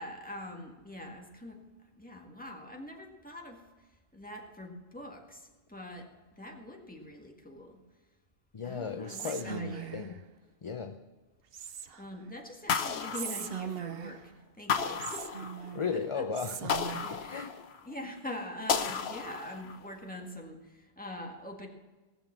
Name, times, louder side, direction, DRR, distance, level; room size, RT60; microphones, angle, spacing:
voice 1, 0.0-1.6 2.0-3.9 4.1-7.8 8.6-10.0 12.0-16.3 17.0-17.5 17.8-21.7, left 1 dB, 10° left, 1 dB, 1.8 m, -44 dB
voice 2, 8.5-10.2 10.6-11.0 15.7-17.5, left 5 dB, 35° left, 7 dB, 0.6 m, -36 dB
Whispering, 9.1-10.2 11.5-12.2 13.1-14.3 15.0-15.9 16.3-17.2, right 8 dB, 65° right, 0.9 m, -40 dB
sound 1, 12.7-14.0 14.7-15.9 16.7-17.9 18.7-19.9, left 6 dB, 80° left, 1.0 m, -33 dB
18.0 x 6.9 x 7.4 m, 1.2 s
omnidirectional pair, 1.1 m